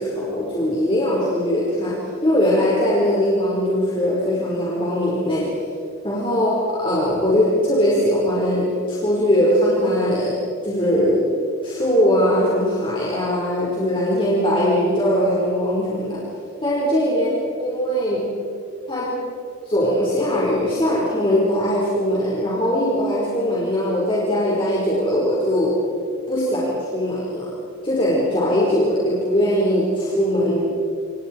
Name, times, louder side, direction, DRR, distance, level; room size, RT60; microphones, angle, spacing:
voice 1, 0.0-5.5 6.0-11.3 11.6-16.2 16.6-17.3 17.6-18.3 18.9-19.3 19.6-25.8 26.3-27.5 27.8-30.6, equal, 25° left, -6 dB, 5.0 m, -20 dB
28.5 x 28.5 x 4.7 m, 2.5 s
head